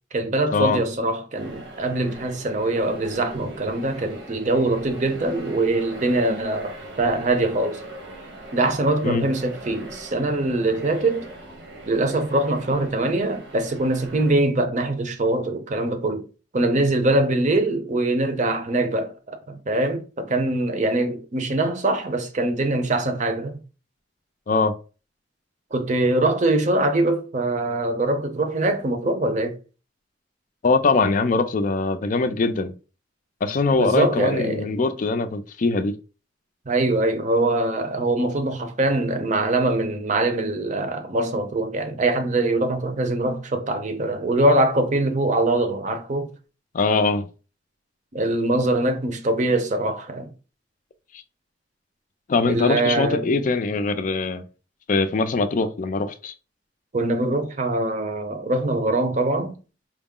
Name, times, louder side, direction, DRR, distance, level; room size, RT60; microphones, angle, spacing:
voice 1, 0.1-7.8 8.5-11.3 11.9-16.3 16.5-23.6 25.7-29.6 33.7-34.7 36.7-46.3 48.1-50.3 52.5-53.4 56.9-59.6, right 2 dB, 45° right, 0.6 m, -23 dB
sound 1, 1.3-14.3, right 1 dB, 80° right, 1.1 m, -40 dB
voice 2, 30.6-32.7 33.4-35.9 46.7-47.3 52.3-54.4 54.9-56.3, left 3 dB, 45° left, 0.4 m, -22 dB
4.5 x 2.0 x 3.6 m
head